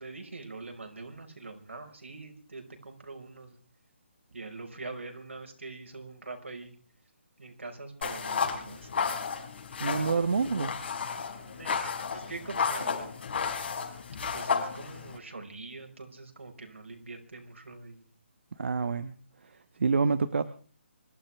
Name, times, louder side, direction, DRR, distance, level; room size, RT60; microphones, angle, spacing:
voice 1, 0.0-3.5 4.3-6.7 7.4-8.9 11.4-13.2 14.3-18.0, right 3 dB, 85° right, 4 dB, 5.0 m, -44 dB
sound 1, 8.0-15.2, left 6 dB, 60° left, 5.2 m, -33 dB
voice 2, 9.8-10.7 18.6-19.1 19.8-20.4, right 5 dB, 65° right, 12 dB, 1.1 m, -27 dB
25.5 x 13.0 x 3.5 m, 0.42 s
hypercardioid pair, 155°, 7 cm